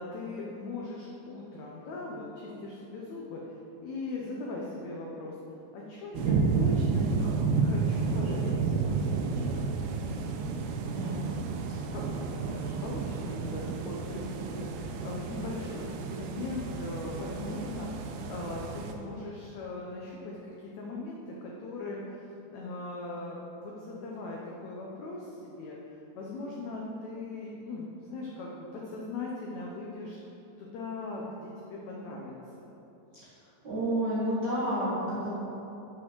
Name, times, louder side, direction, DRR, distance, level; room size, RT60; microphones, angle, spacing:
voice 1, 0.0-3.6 3.8-5.4 5.7-9.7 11.9-25.8 26.1-30.2 30.6-32.7, left 2 dB, 80° left, -2 dB, 1.6 m, -39 dB
sound 1, 6.1-18.9, right 5 dB, 85° right, 2.5 m, -31 dB
voice 2, 10.9-11.3 33.6-35.3, right 1 dB, 55° right, -11 dB, 1.2 m, -30 dB
7.4 x 6.1 x 6.0 m, 3.0 s
omnidirectional pair, 4.3 m